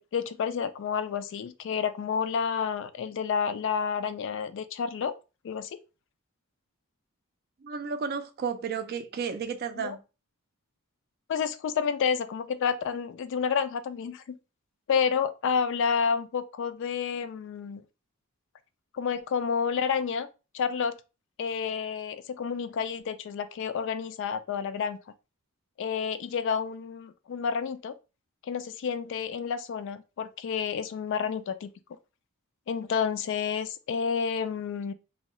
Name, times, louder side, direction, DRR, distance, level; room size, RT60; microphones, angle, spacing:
voice 1, 0.1-5.1 5.4-5.8 9.8-10.0 11.3-14.4 14.9-17.8 18.9-20.3 20.5-20.9 21.4-25.0 25.8-27.9 28.5-31.7 32.7-34.9, left 6 dB, 60° left, 0.3 m, -30 dB
voice 2, 7.6-10.0, right 6 dB, 45° right, 0.4 m, -32 dB
2.7 x 2.2 x 3.0 m
head